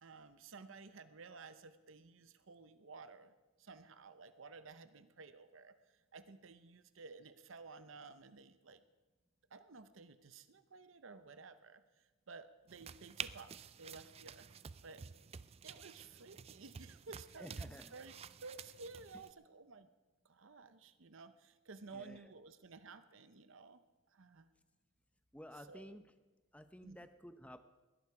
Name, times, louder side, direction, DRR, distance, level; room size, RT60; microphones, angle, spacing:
voice 1, 0.0-3.3 3.6-5.8 6.1-8.8 9.5-11.8 12.3-15.0 15.6-18.1 18.4-19.9 20.2-23.8 24.1-24.5 25.7-26.0 26.8-27.0, right 4 dB, 75° right, 11 dB, 0.8 m, -54 dB
sound 1, 12.7-19.3, right 7 dB, 30° right, 0.4 m, -50 dB
voice 2, 17.4-17.9 21.9-22.3 25.3-26.0 26.5-27.6, equal, 5° left, 10 dB, 0.7 m, -53 dB
20.0 x 11.5 x 4.9 m, 1.2 s
head